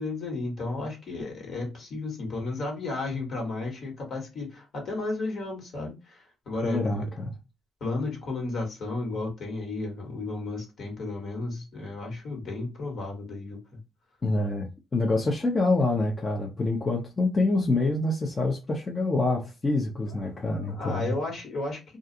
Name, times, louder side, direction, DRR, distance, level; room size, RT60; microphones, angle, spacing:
voice 1, 0.0-7.0 7.8-13.8 20.1-20.2 20.5-22.0, left 2 dB, 60° left, 1.5 m, -33 dB
voice 2, 6.6-7.3 14.2-21.2, left 2 dB, 30° left, 0.6 m, -26 dB
2.4 x 2.3 x 2.7 m
cardioid pair, 90°, 0 cm